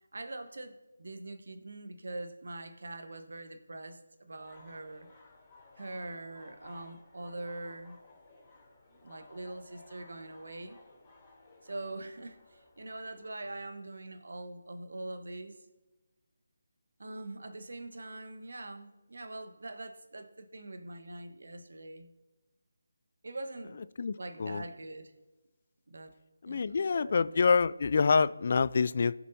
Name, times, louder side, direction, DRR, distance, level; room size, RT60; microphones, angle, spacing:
voice 1, 0.1-5.1 5.8-8.0 9.0-10.8 11.6-15.6 17.0-22.1 23.2-23.8 24.2-25.1 25.9-26.1 26.5-27.4, right 2 dB, 70° right, 1.1 m, -43 dB
sound 1, 4.3-13.3, left 3 dB, 25° left, 3.5 m, -58 dB
voice 2, 26.4-29.1, left 5 dB, 50° left, 0.3 m, -26 dB
19.0 x 7.0 x 2.7 m
figure-of-eight pair, 160°, 0 cm